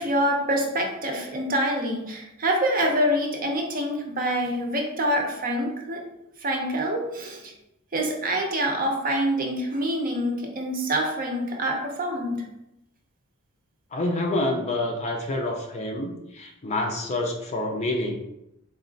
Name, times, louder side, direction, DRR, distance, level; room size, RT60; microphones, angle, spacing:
voice 1, 0.0-6.1 6.4-7.5 7.9-12.5, equal, 40° right, 1 dB, 0.7 m, -26 dB
voice 2, 13.9-18.2, left 1 dB, 30° left, 2 dB, 0.5 m, -27 dB
4.0 x 2.4 x 3.8 m, 0.86 s
head